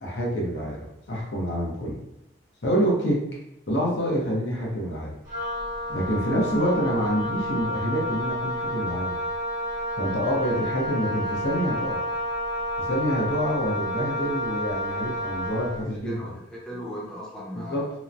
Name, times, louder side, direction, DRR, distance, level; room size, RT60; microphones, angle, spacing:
voice 1, 0.0-2.0 2.6-3.2 3.7-5.2 5.9-9.2 10.0-12.0 12.8-16.3 17.7-17.8, equal, 70° left, -3 dB, 0.8 m, -27 dB
Wind instrument woodwind instrument, 5.3-15.8, left 1 dB, 45° right, 0.9 m, -30 dB
voice 2, 15.9-17.9, equal, 5° left, -7 dB, 0.7 m, -38 dB
2.9 x 2.1 x 2.5 m, 0.82 s
head